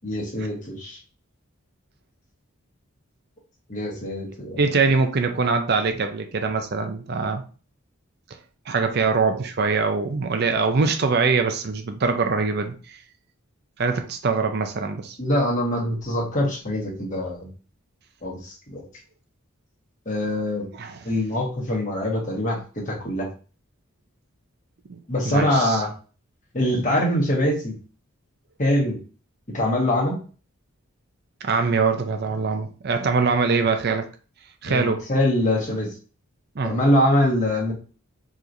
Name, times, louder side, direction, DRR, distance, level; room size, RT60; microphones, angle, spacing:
voice 1, 0.0-1.0 3.7-4.6 15.2-17.5 18.2-18.9 20.0-20.7 21.0-23.3 25.1-25.9 26.5-27.7 28.6-29.0 29.5-30.2 34.7-35.9 36.6-37.7, left 1 dB, 35° left, -3 dB, 1.4 m, -23 dB
voice 2, 4.6-7.4 8.7-13.0 13.8-15.2 20.7-21.1 24.9-25.0 25.2-25.8 31.4-34.1 34.6-35.0 36.6-36.7, right 4 dB, 45° right, 6 dB, 0.5 m, -23 dB
4.8 x 3.1 x 2.6 m, 0.36 s
head